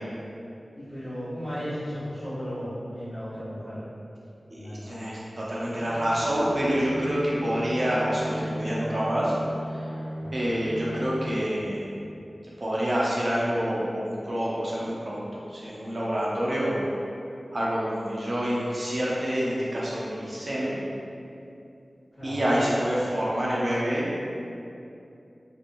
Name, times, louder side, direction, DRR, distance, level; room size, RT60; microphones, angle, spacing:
voice 1, 0.7-3.8 4.5-4.9 10.2-10.3 22.2-22.5, equal, 25° left, -16 dB, 1.3 m, -35 dB
voice 2, 4.5-9.3 10.3-11.9 12.6-16.8 17.5-20.8 22.2-24.1, equal, 55° right, -7 dB, 0.7 m, -27 dB
Bowed string instrument, 5.7-11.7, equal, 55° left, 0.4 m, -36 dB
2.8 x 2.6 x 2.5 m, 2.6 s
wide cardioid pair, 45°, 0 cm